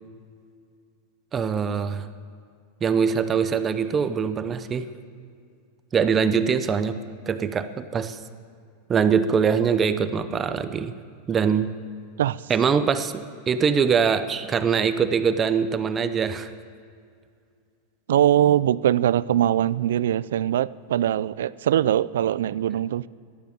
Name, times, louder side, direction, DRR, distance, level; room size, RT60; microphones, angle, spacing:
voice 1, 1.3-2.1 2.8-4.9 5.9-7.0 7.3-8.2 8.9-10.9 11.3-11.7 12.5-16.5, right 6 dB, 20° right, 11 dB, 0.6 m, -23 dB
voice 2, 18.1-23.0, right 11 dB, 85° right, 19 dB, 0.4 m, -22 dB
13.5 x 12.0 x 7.0 m, 2.2 s
supercardioid pair, 155°, 0 cm